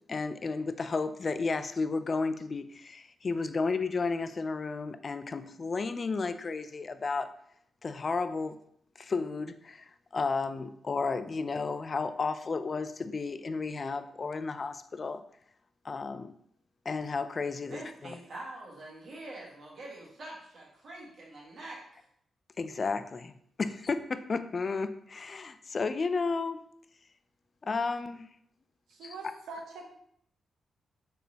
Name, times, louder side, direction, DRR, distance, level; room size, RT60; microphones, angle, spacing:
voice 1, 0.1-7.3 7.8-8.6 9.0-15.2 15.8-16.3 16.9-18.2 22.6-23.3 23.6-26.6 27.6-28.3 29.0-29.1, left 4 dB, 50° left, 11 dB, 0.3 m, -33 dB
voice 2, 17.7-22.0, right 2 dB, 60° right, -4 dB, 1.6 m, -45 dB
voice 3, 28.9-29.8, right 3 dB, 80° right, 1 dB, 0.8 m, -43 dB
4.2 x 3.3 x 2.8 m, 0.70 s
supercardioid pair, 45°, 0 cm